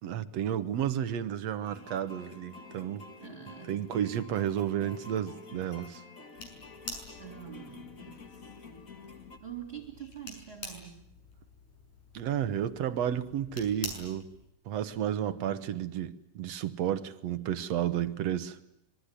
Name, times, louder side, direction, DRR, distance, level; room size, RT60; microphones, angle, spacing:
voice 1, 0.0-3.1 3.7-6.0 12.1-14.3 14.7-18.6, right 10 dB, 60° right, 2.1 m, -32 dB
sound 1, 1.6-9.4, left 4 dB, 30° left, 1.8 m, -49 dB
voice 2, 3.2-3.8 7.2-8.5 9.4-11.0 15.2-15.6, right 9 dB, 20° right, 3.1 m, -45 dB
sound 2, 6.4-14.5, left 3 dB, 80° left, 8.0 m, -47 dB
26.0 x 23.0 x 9.9 m
omnidirectional pair, 3.6 m